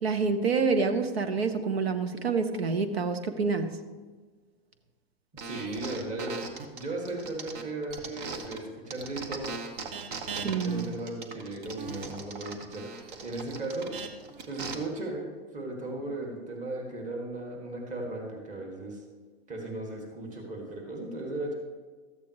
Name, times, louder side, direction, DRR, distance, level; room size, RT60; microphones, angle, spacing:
voice 1, 0.0-3.7 10.4-10.9, right 4 dB, 90° right, 8 dB, 1.0 m, -27 dB
voice 2, 5.4-6.4 6.7-9.6 10.3-13.9 14.2-19.0 19.5-21.5, right 2 dB, 25° right, 0 dB, 2.0 m, -36 dB
sound 1, 5.4-8.6 8.9-14.7, right 4 dB, 55° right, 1.3 m, -39 dB
13.5 x 8.4 x 3.1 m, 1.4 s
hypercardioid pair, 115°, 30 cm